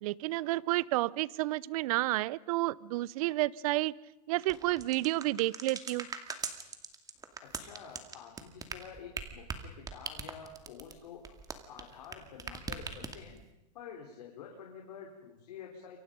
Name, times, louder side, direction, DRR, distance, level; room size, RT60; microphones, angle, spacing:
voice 1, 0.0-3.9 4.3-6.1, right 18 dB, 60° right, 23 dB, 0.8 m, -30 dB
sound 1, 4.4-12.1 12.4-13.4, right 5 dB, 15° right, 2.4 m, -40 dB
voice 2, 7.4-11.2 11.7-13.4 13.7-16.0, left 7 dB, 70° left, 0 dB, 4.3 m, -49 dB
28.5 x 24.0 x 5.3 m, 0.94 s
hypercardioid pair, 120°, 21 cm